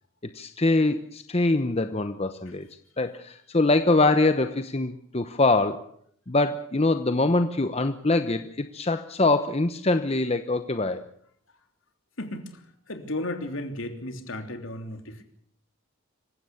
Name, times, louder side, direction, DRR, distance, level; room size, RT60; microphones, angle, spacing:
voice 1, 0.3-2.7 3.0-5.9 6.3-11.1, left 2 dB, 30° left, 9 dB, 0.9 m, -24 dB
voice 2, 12.2-12.5 12.9-15.2, left 1 dB, 70° left, 6 dB, 3.3 m, -34 dB
26.0 x 16.0 x 7.1 m, 0.64 s
head